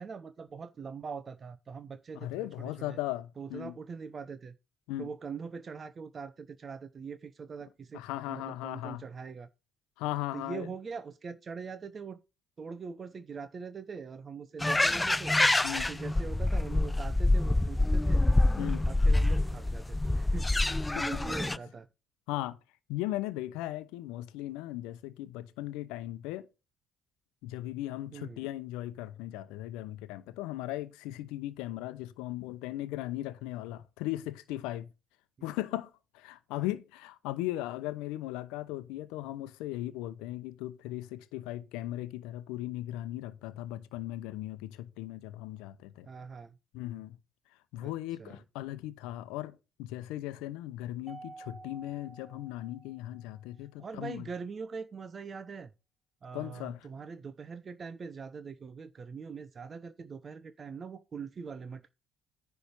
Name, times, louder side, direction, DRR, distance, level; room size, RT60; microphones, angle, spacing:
voice 1, 0.0-3.0 3.4-4.5 5.0-8.0 8.3-9.5 10.3-12.2 12.6-15.3 15.7-18.2 18.9-20.5 21.1-21.9 28.1-28.4 36.5-36.6 46.1-46.5 47.8-47.9 48.2-48.4 53.8-55.7 56.2-61.9, right 5 dB, 40° right, 0.7 m, -42 dB
voice 2, 2.1-3.7 4.9-5.1 7.9-9.0 10.0-10.7 15.6-15.9 18.6-18.9 20.6-21.2 22.3-22.6 22.9-26.5 27.4-34.9 35.4-46.1 46.7-47.2 47.7-54.3 56.3-56.9, left 15 dB, 75° left, 0.8 m, -38 dB
sound 1, 14.6-21.6, left 2 dB, 15° left, 0.5 m, -26 dB
Mallet percussion, 51.1-53.5, right 3 dB, 15° right, 1.1 m, -51 dB
10.0 x 3.4 x 7.0 m
hypercardioid pair, 55°, 0 cm